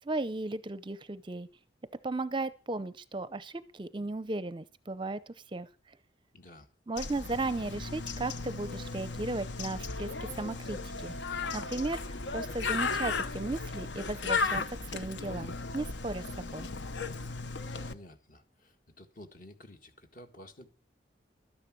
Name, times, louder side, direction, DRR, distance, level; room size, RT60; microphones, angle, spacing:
voice 1, 0.0-1.5 2.0-5.7 6.9-11.1 11.5-12.0 12.3-14.6 14.9-16.7, right 2 dB, 25° right, 0.5 m, -35 dB
voice 2, 6.3-6.7 17.8-20.7, left 1 dB, 45° left, 1.7 m, -52 dB
Bird, 7.0-17.9, left 4 dB, 75° left, 0.9 m, -35 dB
13.0 x 10.0 x 6.1 m
head